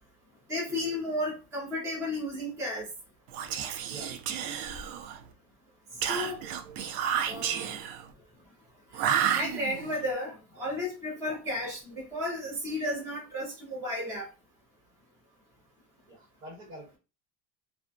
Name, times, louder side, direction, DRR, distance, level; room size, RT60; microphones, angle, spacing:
voice 1, 0.5-2.9 6.0-6.4 7.3-7.8 8.9-14.3, left 1 dB, 5° right, -4 dB, 0.4 m, -33 dB
Whispering, 3.3-5.3 6.0-8.0 8.9-10.0, right 9 dB, 90° right, 0.5 m, -31 dB
voice 2, 6.4-6.8 7.3-7.5 11.3-11.4 16.1-17.0, right 1 dB, 60° right, -1 dB, 1.5 m, -48 dB
2.4 x 2.1 x 2.5 m, 0.31 s
cardioid pair, 175°, 43 cm